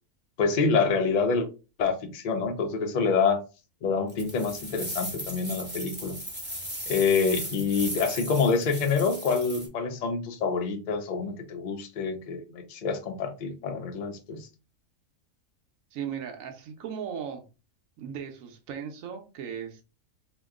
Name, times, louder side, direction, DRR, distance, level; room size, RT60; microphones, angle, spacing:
voice 1, 0.4-1.5 1.8-3.4 3.8-6.2 6.9-14.5, left 5 dB, 80° left, 0.4 m, -27 dB
sound 1, 4.1-9.7, equal, 10° right, 0.6 m, -37 dB
voice 2, 15.9-17.4 18.0-19.8, right 8 dB, 70° right, 1.0 m, -37 dB
2.9 x 2.2 x 3.5 m
omnidirectional pair, 1.6 m